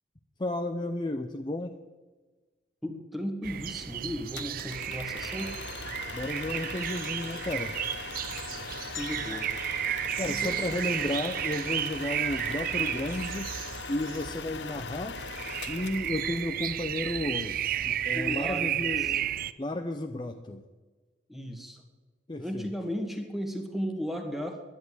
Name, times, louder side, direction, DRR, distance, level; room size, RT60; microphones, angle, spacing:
voice 1, 0.4-1.8 6.1-7.7 10.2-13.5 13.9-15.2 15.7-17.6 17.9-19.3 19.6-20.6 22.3-22.6, left 1 dB, 25° left, 6 dB, 0.6 m, -33 dB
voice 2, 2.8-5.6 9.0-9.5 10.3-10.9 18.1-19.1 21.3-21.8 22.4-24.6, equal, ahead, 4 dB, 1.7 m, -35 dB
sound 1, 3.4-19.5, right 11 dB, 50° right, 0.4 m, -33 dB
sound 2, 4.4-16.7, left 5 dB, 65° left, 0.8 m, -41 dB
sound 3, 8.9-11.2, left 10 dB, 85° left, 1.3 m, -48 dB
11.0 x 10.5 x 9.5 m, 1.3 s
head